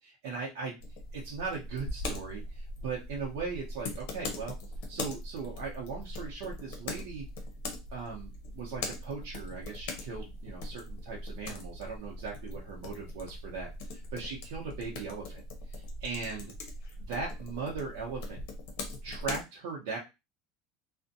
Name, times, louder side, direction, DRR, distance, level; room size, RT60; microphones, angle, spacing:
voice 1, 0.0-0.8 1.1-4.6 4.9-7.3 7.9-15.4 15.7-16.5 17.0-18.4 19.0-20.0, right 4 dB, 80° right, -3 dB, 0.7 m, -39 dB
sound 1, 0.8-19.4, left 2 dB, 65° left, 0.7 m, -41 dB
2.5 x 2.1 x 2.6 m, 0.25 s
supercardioid pair, 155°, 0 cm